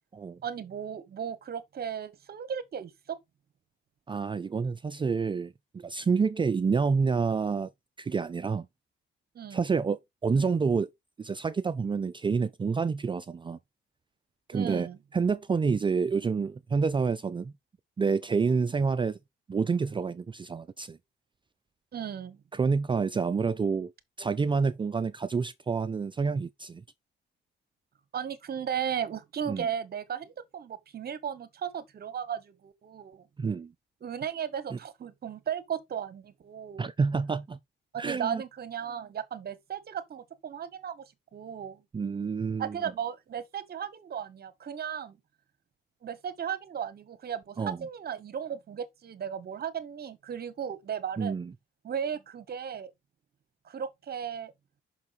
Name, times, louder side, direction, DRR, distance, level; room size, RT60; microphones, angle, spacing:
voice 1, 0.4-3.2 9.3-9.6 14.5-15.0 21.9-22.4 28.1-33.2 34.0-36.9 38.0-41.8 42.6-45.2 46.0-51.4 51.8-52.9 53.6-54.5, right 8 dB, 50° right, 1.3 m, -36 dB
voice 2, 4.1-7.7 8.0-8.7 9.5-10.9 11.2-13.6 14.5-14.9 15.1-17.5 18.0-19.2 19.5-21.0 22.5-23.9 24.2-26.8 29.5-29.7 33.4-33.7 34.7-34.8 36.8-37.6 38.0-38.4 41.9-42.8 47.6-47.8 51.2-51.5, right 5 dB, 25° right, 0.4 m, -28 dB
5.8 x 5.8 x 4.1 m
cardioid pair, 90°, 20 cm